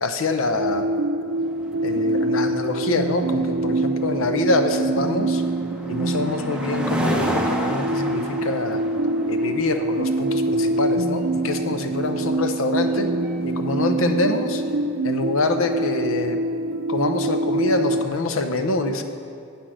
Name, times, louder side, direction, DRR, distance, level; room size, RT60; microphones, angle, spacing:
voice 1, 0.0-0.9 1.8-5.4 5.9-8.8 9.2-13.1 13.4-14.6 15.0-16.4 16.9-19.0, left 2 dB, 85° left, 7 dB, 0.7 m, -25 dB
sound 1, 0.6-18.1, right 2 dB, 80° right, 0.5 m, -25 dB
sound 2, 1.3-14.9, equal, 5° right, 0.6 m, -33 dB
8.5 x 6.0 x 6.3 m, 2.5 s
head